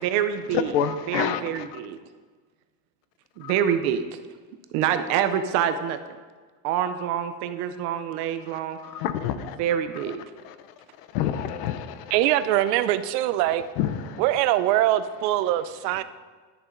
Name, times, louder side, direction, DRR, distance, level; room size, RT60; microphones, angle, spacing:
voice 1, 0.0-0.8 1.1-2.0 3.4-4.0 4.7-6.0 6.6-8.8 9.6-10.2, right 9 dB, 35° right, 0.4 m, -26 dB
voice 2, 0.7-1.4 3.4-3.5 8.9-9.6 11.1-11.9 13.8-14.2, left 9 dB, 65° left, 0.9 m, -27 dB
voice 3, 12.1-13.6 14.2-16.0, right 13 dB, 70° right, 0.7 m, -22 dB
11.5 x 7.0 x 5.2 m
cardioid pair, 170°, 50 cm